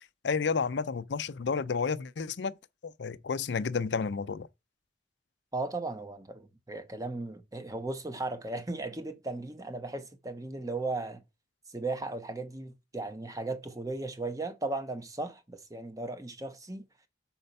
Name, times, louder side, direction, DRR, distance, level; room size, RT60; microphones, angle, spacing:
voice 1, 0.2-2.5 2.8-4.5, left 5 dB, 75° left, 0.5 m, -31 dB
voice 2, 5.5-11.2 11.7-16.8, right 2 dB, 20° right, 1.0 m, -36 dB
6.7 x 4.4 x 5.3 m
head